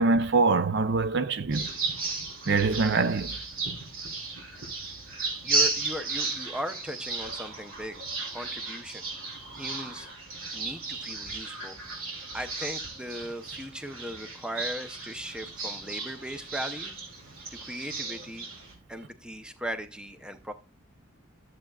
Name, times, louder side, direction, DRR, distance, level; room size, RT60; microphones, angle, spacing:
voice 1, 0.0-1.7 2.5-3.4, right 3 dB, 55° right, 0.5 m, -24 dB
sound 1, 1.5-18.7, right 3 dB, 70° right, 3.6 m, -34 dB
voice 2, 5.4-9.1 9.6-11.8 12.3-16.9 17.5-18.5 18.9-20.5, equal, 5° right, 0.7 m, -38 dB
14.0 x 7.6 x 2.3 m
head